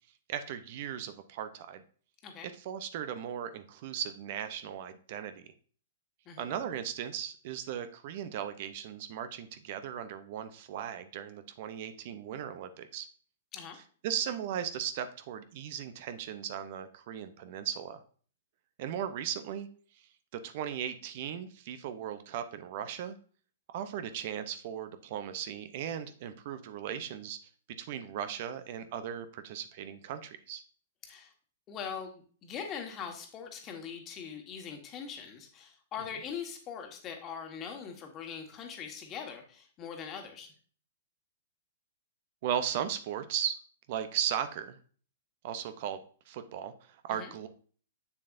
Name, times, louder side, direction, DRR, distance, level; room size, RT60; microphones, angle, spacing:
voice 1, 0.3-1.8 2.6-5.5 6.4-13.1 14.0-18.0 18.8-19.7 20.3-23.2 23.7-27.5 27.8-30.6 42.4-43.5 43.9-44.8 45.4-46.0 46.3-47.5, right 9 dB, 55° right, 10 dB, 0.7 m, -37 dB
voice 2, 31.7-40.5 47.1-47.3, left 7 dB, 30° left, 3 dB, 1.5 m, -42 dB
7.0 x 6.8 x 2.6 m, 0.43 s
hypercardioid pair, 125°, 0 cm